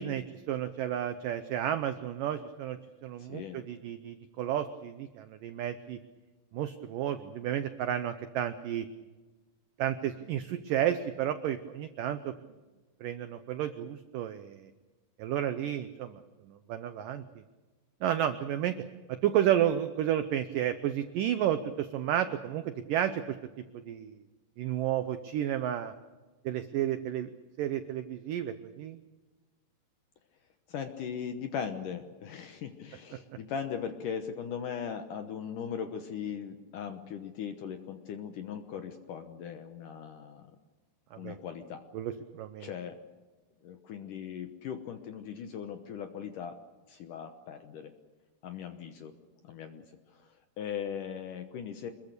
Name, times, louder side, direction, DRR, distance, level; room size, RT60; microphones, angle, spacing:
voice 1, 0.0-6.0 6.5-8.9 9.8-12.3 13.0-14.7 15.2-16.2 16.5-17.2 18.0-18.7 19.1-23.4 23.9-24.2 24.6-25.9 26.5-27.3 27.6-29.0 41.1-41.4 41.9-42.7, right 11 dB, 80° right, 10 dB, 1.9 m, -32 dB
voice 2, 3.2-3.6 30.7-40.5 41.2-41.8 42.6-43.0 43.6-46.6 46.9-47.9 48.4-49.1 49.4-51.9, left 7 dB, 70° left, 7 dB, 2.1 m, -39 dB
26.0 x 21.5 x 6.7 m, 1.2 s
omnidirectional pair, 4.9 m